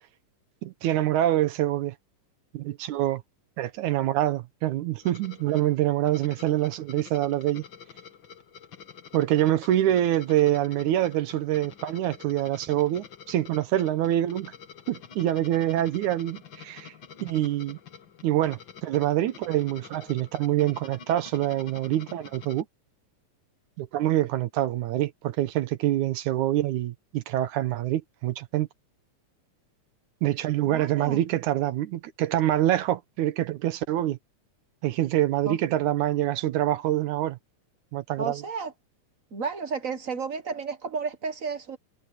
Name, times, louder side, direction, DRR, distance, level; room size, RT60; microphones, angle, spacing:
voice 1, 0.6-1.9 2.5-3.2 3.6-7.6 9.1-14.5 14.9-16.9 17.2-17.8 18.2-22.7 23.8-28.7 30.2-34.2 34.8-37.4 37.9-38.4, right 13 dB, 75° right, 2.2 m, -25 dB
sound 1, 5.0-22.6, left 7 dB, 45° left, 1.8 m, -48 dB
voice 2, 30.6-31.2 35.4-35.6 38.2-38.7 39.3-41.8, right 5 dB, 50° right, 0.9 m, -32 dB
omnidirectional pair, 3.6 m